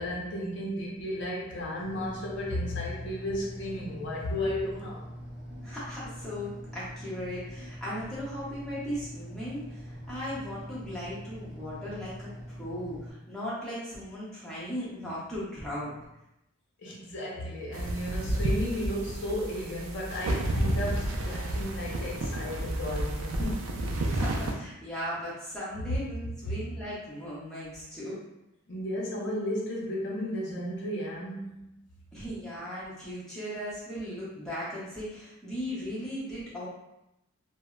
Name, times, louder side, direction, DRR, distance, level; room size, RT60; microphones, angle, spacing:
voice 1, 0.0-5.1 16.8-23.7 25.9-26.0 26.2-26.6 28.7-31.8, left 1 dB, 50° left, -3 dB, 0.5 m, -34 dB
sound 1, 1.8-13.1, equal, 45° right, 0.9 m, -43 dB
voice 2, 5.6-15.9 24.1-28.2 32.1-36.7, equal, 5° left, -9 dB, 0.7 m, -37 dB
sound 2, 17.7-24.5, right 1 dB, 70° right, 0.4 m, -31 dB
2.0 x 2.0 x 3.6 m, 0.88 s
head